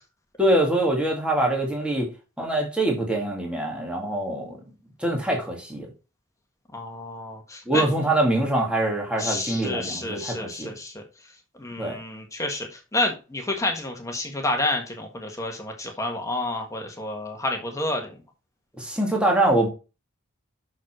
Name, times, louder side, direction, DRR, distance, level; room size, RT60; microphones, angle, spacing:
voice 1, 0.4-2.1 2.4-4.6 5.0-5.9 7.7-10.7 11.8-12.0 18.8-19.7, right 1 dB, 5° right, 2.2 m, -24 dB
voice 2, 6.7-7.9 9.2-11.0 11.6-18.1, left 2 dB, 15° left, 1.5 m, -29 dB
6.4 x 5.7 x 6.0 m
head